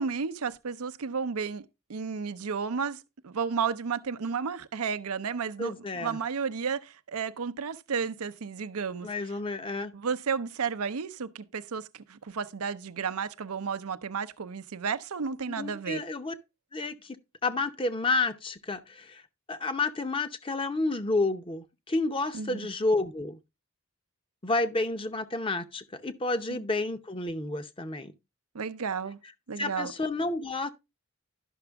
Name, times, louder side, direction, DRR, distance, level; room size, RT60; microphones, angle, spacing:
voice 1, 0.0-9.1 9.9-16.0 22.3-22.6 28.5-29.2 29.5-29.9, right 6 dB, 85° right, 0.6 m, -32 dB
voice 2, 5.6-6.2 9.0-9.9 15.5-16.3 16.7-17.2 17.4-19.2 19.5-23.4 24.4-28.1 29.6-30.7, left 2 dB, 25° left, 0.7 m, -30 dB
12.0 x 6.0 x 3.4 m
head